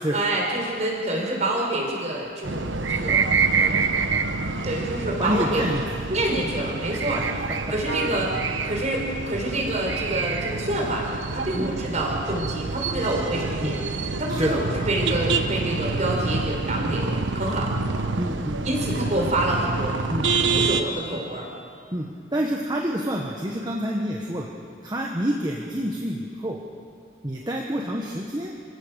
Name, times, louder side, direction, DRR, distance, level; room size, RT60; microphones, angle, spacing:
voice 1, 0.1-3.8 4.6-5.6 6.1-7.2 7.7-8.3 8.6-13.8 14.2-17.7 18.6-20.0 20.4-21.5, right 1 dB, 40° right, -1 dB, 4.9 m, -27 dB
sound 1, 2.4-20.8, right 4 dB, 90° right, 1.1 m, -27 dB
voice 2, 5.2-6.0 11.5-11.7 13.6-13.7 14.3-14.6 18.2-18.6 20.1-20.3 21.9-24.5 24.8-26.6 27.2-28.6, equal, 20° right, -1 dB, 1.5 m, -27 dB
28.0 x 16.5 x 6.6 m, 2.3 s
head